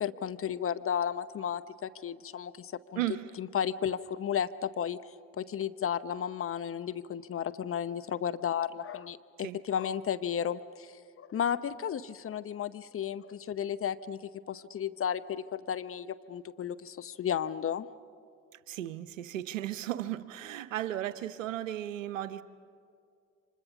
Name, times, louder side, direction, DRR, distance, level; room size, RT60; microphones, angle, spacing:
voice 1, 0.0-3.0 3.4-5.0 5.4-17.9, left 8 dB, 35° left, 13 dB, 0.9 m, -33 dB
voice 2, 3.0-3.3 9.4-9.6 18.7-22.4, right 13 dB, 85° right, 14 dB, 0.8 m, -35 dB
29.0 x 25.0 x 6.0 m, 2.4 s
hypercardioid pair, 60°, 38 cm